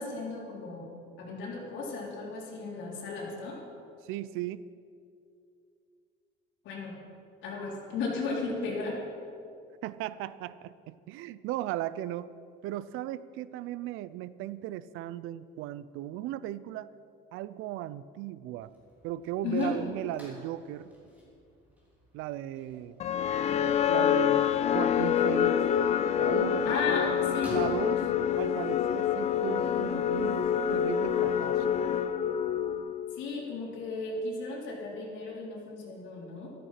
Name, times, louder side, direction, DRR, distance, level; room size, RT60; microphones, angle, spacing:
voice 1, 0.0-3.6 6.6-7.0 7.4-9.0 19.4-19.8 26.6-27.5 33.2-36.5, left 4 dB, 65° left, -3 dB, 4.0 m, -35 dB
voice 2, 4.0-4.7 9.8-12.3 12.6-16.9 17.3-18.7 19.0-20.9 22.1-23.0 23.9-25.6 26.2-27.2 27.5-28.1 28.4-31.7, right 13 dB, 85° right, 17 dB, 0.6 m, -36 dB
sound 1, 18.6-30.9, equal, 5° right, 3.7 m, -52 dB
sound 2, 23.0-33.2, left 9 dB, 35° left, 0.4 m, -27 dB
14.0 x 13.0 x 5.8 m, 2.5 s
cardioid pair, 175°, 21 cm